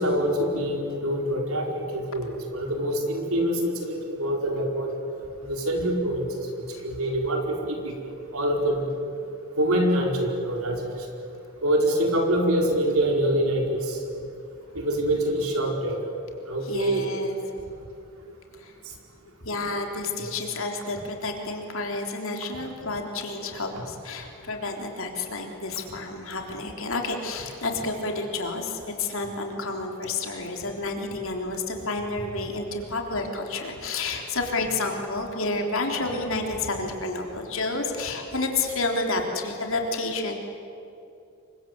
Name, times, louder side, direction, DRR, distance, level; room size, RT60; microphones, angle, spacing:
voice 1, 0.0-4.9 5.4-6.3 6.8-8.9 9.6-11.1 11.6-14.0 14.7-16.0 16.5-17.1 20.2-20.3, right 1 dB, 70° right, 2 dB, 5.0 m, -25 dB
voice 2, 16.6-17.4 18.6-18.7 19.4-40.3, left 3 dB, 60° left, 2 dB, 3.7 m, -30 dB
28.5 x 24.5 x 8.2 m, 2.8 s
head